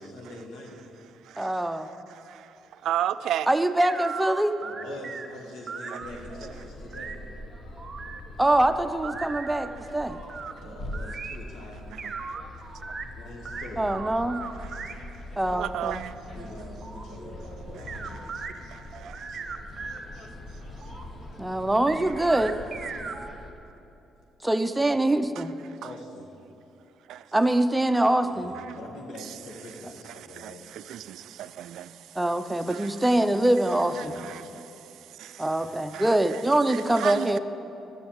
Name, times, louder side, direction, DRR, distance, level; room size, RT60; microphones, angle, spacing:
voice 1, 0.0-0.8 4.6-7.2 10.5-11.8 13.1-13.9 15.1-15.2 16.3-18.3 22.3-23.1 25.8-26.3 28.2-30.6 33.9-34.3 35.5-35.7, left 1 dB, 85° left, 1.9 m, -44 dB
voice 2, 1.4-1.9 3.5-4.5 8.4-10.2 13.8-14.4 15.4-16.0 21.4-22.5 24.4-25.5 27.3-28.5 32.2-34.2 35.4-37.4, right 1 dB, 10° right, 0.5 m, -24 dB
voice 3, 2.1-3.5 5.9-6.0 10.6-10.7 11.9-12.4 14.6-15.0 15.5-16.2 17.7-18.2 18.5-19.6 22.8-23.0 25.4-25.5 27.1-27.3 28.6-28.7 29.2-29.3 30.2-32.2 32.7-33.2 34.0-35.5 35.9-36.4 36.7-37.4, right 11 dB, 80° right, 0.3 m, -36 dB
sound 1, 3.8-5.3 5.7-7.2 7.8-9.7 10.1-11.4 12.0-13.0 13.4-14.9 15.6-18.5 18.9-20.0 20.4-21.0 21.9-23.3, right 5 dB, 45° right, 0.8 m, -39 dB
sound 2, 6.0-23.5, left 1 dB, 45° left, 1.1 m, -43 dB
10.0 x 6.7 x 8.9 m
cardioid pair, 90°, 0 cm